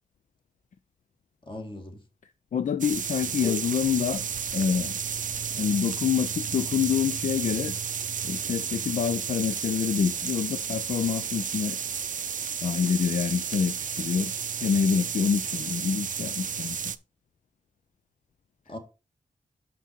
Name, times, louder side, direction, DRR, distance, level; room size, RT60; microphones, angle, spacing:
voice 1, 1.4-2.0 3.3-3.6 4.0-4.3 5.5-5.8 16.0-16.1 18.7-18.8, left 2 dB, 35° left, 1.9 m, -39 dB
voice 2, 2.5-4.2 4.5-5.0 5.6-7.7 8.2-11.8 12.6-14.3 14.6-16.8, left 7 dB, 70° left, 0.5 m, -27 dB
sound 1, 2.8-17.0, right 7 dB, 70° right, 0.5 m, -32 dB
5.9 x 5.9 x 4.5 m
wide cardioid pair, 90°, 14 cm